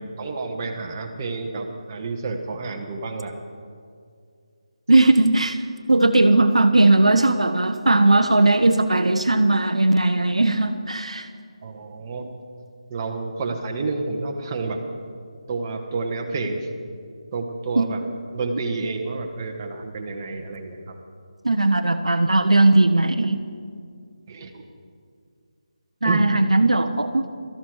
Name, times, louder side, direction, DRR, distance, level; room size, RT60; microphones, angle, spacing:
voice 1, 0.0-3.3 11.6-12.3 12.9-14.8 15.5-16.7 17.3-18.0 18.3-21.0 24.3-24.6 26.0-26.3, right 3 dB, 25° right, 2 dB, 1.5 m, -29 dB
voice 2, 4.9-5.6 5.9-11.3 17.8-17.9 21.4-23.4 26.0-27.2, right 2 dB, 75° right, 8 dB, 0.9 m, -18 dB
18.5 x 13.5 x 4.7 m, 2.3 s
figure-of-eight pair, 155°, 3 cm